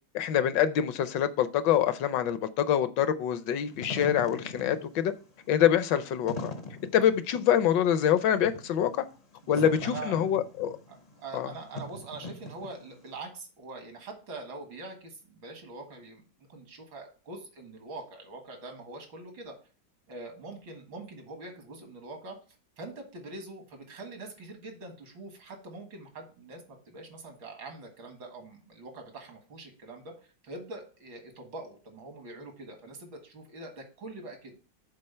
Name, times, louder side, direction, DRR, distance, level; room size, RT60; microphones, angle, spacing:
voice 1, 0.1-5.1 5.5-6.5 6.9-8.9 9.5-9.7 10.1-10.7 11.3-11.5, left 9 dB, 75° left, 1.3 m, -25 dB
Wind / Fire, 3.6-13.1, left 2 dB, 55° left, 0.4 m, -42 dB
voice 2, 9.4-10.2 10.9-19.5 20.1-22.4 22.8-34.5, right 2 dB, 80° right, 2.4 m, -44 dB
7.7 x 3.7 x 5.5 m
omnidirectional pair, 2.0 m